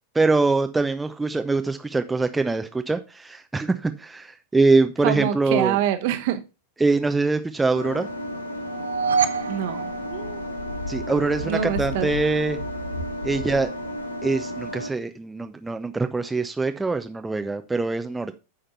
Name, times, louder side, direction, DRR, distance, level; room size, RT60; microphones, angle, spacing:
voice 1, 0.1-5.8 6.8-8.1 10.9-12.6 13.2-13.7 14.2-18.3, right 3 dB, 10° right, 7 dB, 0.7 m, -23 dB
voice 2, 5.0-6.4 9.5-10.4 11.4-12.1, right 10 dB, 50° right, 9 dB, 1.2 m, -26 dB
sound 1, 7.7-14.9, left 1 dB, 75° left, 1.5 m, -32 dB
sound 2, 8.6-10.9, right 6 dB, 65° right, 0.8 m, -27 dB
9.0 x 5.1 x 5.5 m, 0.29 s
figure-of-eight pair, 90°, 0 cm